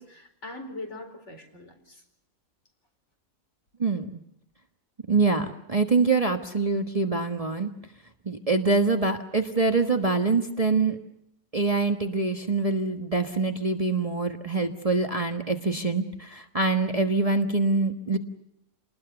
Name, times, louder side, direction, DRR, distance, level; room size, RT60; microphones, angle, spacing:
voice 1, 0.0-2.0, left 2 dB, 55° left, 4 dB, 4.7 m, -41 dB
voice 2, 3.8-4.2 5.1-7.7 8.2-11.0 11.5-18.2, right 3 dB, 25° right, 5 dB, 1.4 m, -25 dB
28.5 x 20.0 x 6.9 m, 0.84 s
omnidirectional pair, 1.5 m